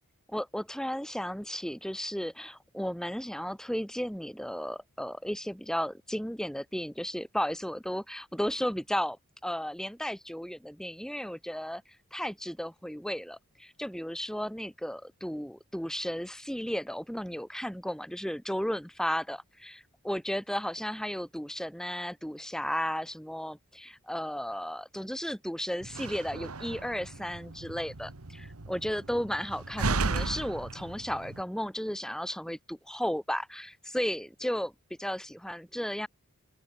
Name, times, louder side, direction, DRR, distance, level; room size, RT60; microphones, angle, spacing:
voice 1, 0.3-9.2 9.4-11.8 12.1-34.7 35.0-36.1, equal, 5° left, 2.2 m, -34 dB
Slam, 25.8-31.4, right 3 dB, 80° right, 1.5 m, -35 dB
open air
head